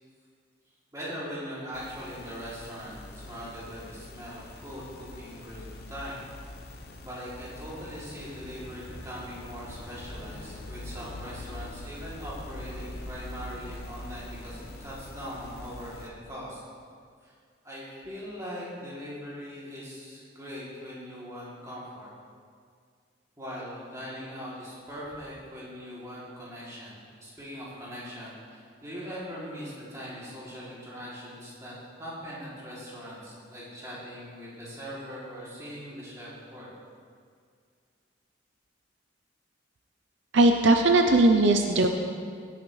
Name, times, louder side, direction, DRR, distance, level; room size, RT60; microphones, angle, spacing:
voice 1, 0.9-6.2 7.0-16.6 17.2-17.3 17.6-22.1 23.4-36.7, equal, 15° right, -8 dB, 3.0 m, -41 dB
sound 1, 1.7-16.1, left 1 dB, 50° left, 1.0 m, -43 dB
voice 2, 40.3-41.9, right 2 dB, 70° right, 5 dB, 0.6 m, -19 dB
16.5 x 8.8 x 3.3 m, 2.1 s
head